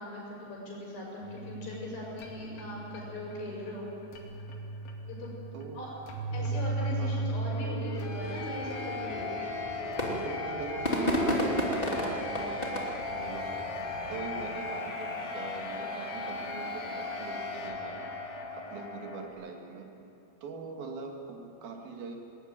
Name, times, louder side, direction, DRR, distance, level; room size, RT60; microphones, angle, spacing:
voice 1, 0.0-3.9 5.0-5.3 5.7-5.9 6.3-9.4, left 2 dB, 85° left, -2 dB, 8.4 m, -40 dB
sound 1, 1.2-19.3, equal, 60° left, 3.9 m, -36 dB
voice 2, 6.2-6.6 7.0-7.2 10.1-13.7 14.1-18.0 18.5-19.9 20.4-22.2, right 4 dB, 65° right, 2 dB, 3.9 m, -42 dB
sound 2, 8.2-14.4, equal, 15° left, 2.0 m, -34 dB
20.0 x 20.0 x 9.1 m, 2.8 s
omnidirectional pair, 4.7 m